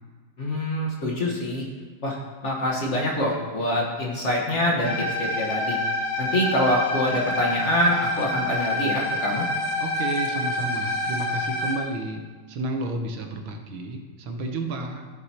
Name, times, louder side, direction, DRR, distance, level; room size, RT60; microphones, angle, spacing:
voice 1, 0.4-1.7 2.0-5.8 6.2-9.5, left 1 dB, 40° left, -2 dB, 1.4 m, -25 dB
sound 1, 4.8-11.8, left 1 dB, 60° left, 1.6 m, -27 dB
voice 2, 9.8-12.2 12.5-15.1, right 2 dB, 80° right, 4 dB, 1.8 m, -31 dB
14.0 x 8.0 x 2.9 m, 1.5 s
omnidirectional pair, 2.2 m